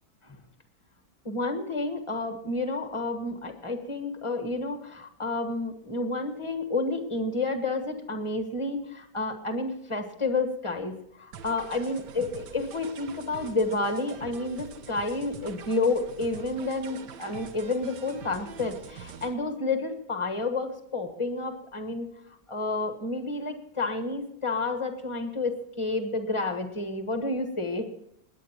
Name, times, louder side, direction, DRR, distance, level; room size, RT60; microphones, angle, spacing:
voice 1, 1.2-22.1 22.5-27.8, left 3 dB, 20° left, 6 dB, 1.3 m, -30 dB
sound 1, 11.3-19.3, right 7 dB, 75° right, 1.5 m, -45 dB
20.0 x 8.9 x 4.4 m, 0.75 s
omnidirectional pair, 1.9 m